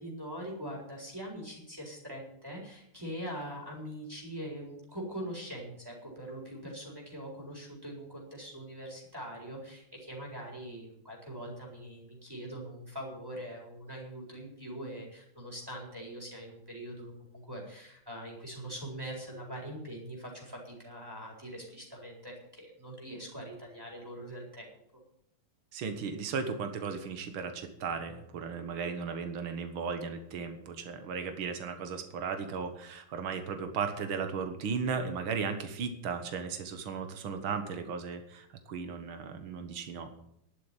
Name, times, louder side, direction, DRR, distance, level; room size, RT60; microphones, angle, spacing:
voice 1, 0.0-24.7, right 1 dB, 10° right, -2 dB, 4.2 m, -42 dB
voice 2, 25.7-40.1, right 5 dB, 75° right, 7 dB, 2.2 m, -36 dB
11.5 x 8.5 x 9.9 m, 0.76 s
omnidirectional pair, 2.2 m